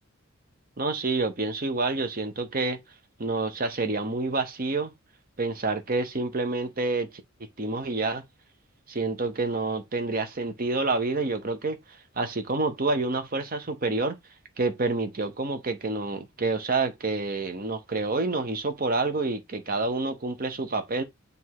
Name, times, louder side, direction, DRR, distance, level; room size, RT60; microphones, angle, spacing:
voice 1, 0.8-2.8 3.2-4.9 5.4-7.1 7.4-8.2 8.9-14.2 14.6-21.0, right 3 dB, 45° right, 1.0 m, -28 dB
7.6 x 2.7 x 4.8 m
head